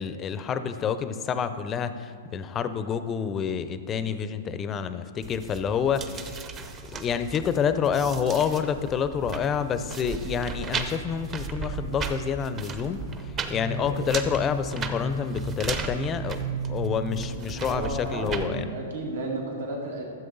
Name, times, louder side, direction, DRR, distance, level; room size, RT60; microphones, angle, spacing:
voice 1, 0.0-6.4 6.9-18.7, left 7 dB, 25° left, 11 dB, 0.5 m, -28 dB
sound 1, 5.2-18.5, right 4 dB, 25° right, 0.7 m, -34 dB
voice 2, 17.6-20.1, right 2 dB, 80° right, -1 dB, 2.0 m, -33 dB
13.5 x 7.4 x 4.0 m, 2.2 s
hypercardioid pair, 135°, 0 cm